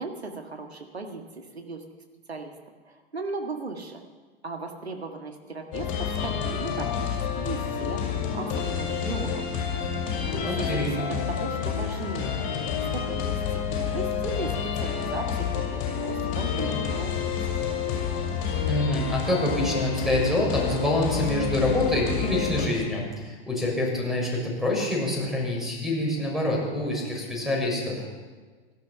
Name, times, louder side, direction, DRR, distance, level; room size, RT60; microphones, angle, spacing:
voice 1, 0.0-1.8 2.3-2.5 2.9-4.0 4.4-9.5 10.3-12.4 12.9-14.5 14.8-17.3, right 3 dB, 80° right, 3 dB, 1.8 m, -37 dB
sound 1, 5.7-22.7, left 7 dB, 40° left, 5.3 m, -29 dB
voice 2, 10.4-11.0 18.7-28.1, left 1 dB, ahead, -2 dB, 6.6 m, -26 dB
17.5 x 12.5 x 5.9 m, 1.4 s
figure-of-eight pair, 95°, 31 cm